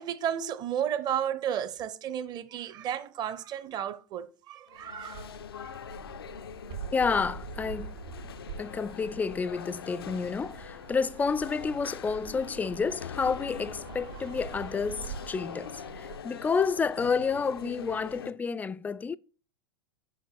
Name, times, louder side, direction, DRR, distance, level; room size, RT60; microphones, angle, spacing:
voice 1, 0.0-5.2 5.6-5.8, right 9 dB, 35° right, 0.8 m, -33 dB
sound 1, 4.7-18.3, left 8 dB, 75° left, 0.5 m, -43 dB
Fixed-wing aircraft airplane, 5.1-16.2, right 7 dB, 60° right, 3.0 m, -44 dB
voice 2, 6.9-7.9 8.6-19.2, left 5 dB, 15° left, 0.3 m, -30 dB
6.1 x 5.5 x 5.7 m
figure-of-eight pair, 90°, 12 cm